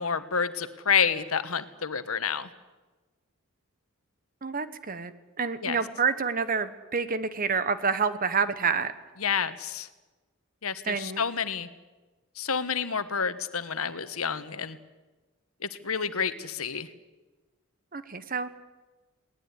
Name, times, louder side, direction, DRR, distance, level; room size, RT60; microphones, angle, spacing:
voice 1, 0.0-2.5 5.6-5.8 9.2-9.9 10.6-11.7 12.4-14.8 15.6-16.9, left 6 dB, 85° left, 12 dB, 1.4 m, -29 dB
voice 2, 4.4-5.1 5.4-8.9 10.9-11.2 17.9-18.5, right 5 dB, 40° right, 12 dB, 1.3 m, -28 dB
21.0 x 19.0 x 9.9 m, 1.2 s
head